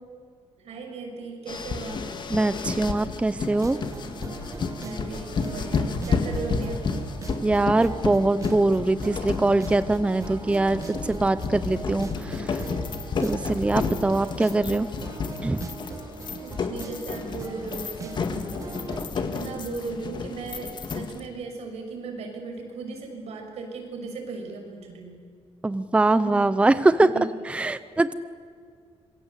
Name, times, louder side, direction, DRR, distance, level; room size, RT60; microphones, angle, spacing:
voice 1, 0.6-2.2 4.8-6.9 16.4-25.2 26.2-26.5 27.0-27.3, right 3 dB, 80° right, 3 dB, 6.2 m, -37 dB
sound 1, 1.5-21.3, left 5 dB, 45° left, 2.0 m, -32 dB
voice 2, 2.3-3.8 7.4-12.6 13.2-14.9 15.4-15.7 25.6-27.1 27.5-28.1, right 2 dB, 10° right, 14 dB, 0.6 m, -23 dB
sound 2, 3.5-19.1, right 4 dB, 30° right, 2.0 m, -40 dB
26.5 x 23.0 x 8.2 m, 2.2 s
cardioid pair, 150°, 11 cm